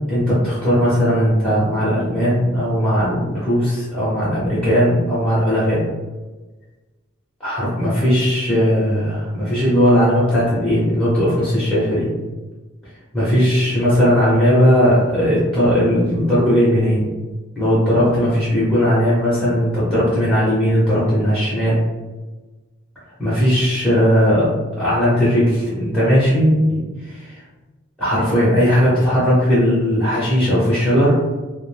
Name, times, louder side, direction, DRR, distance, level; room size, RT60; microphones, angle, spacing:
voice 1, 0.1-5.8 7.4-12.1 13.1-17.1 17.6-21.8 23.2-27.3 28.0-31.1, equal, 5° left, -11 dB, 0.7 m, -17 dB
2.4 x 2.1 x 3.2 m, 1.2 s
head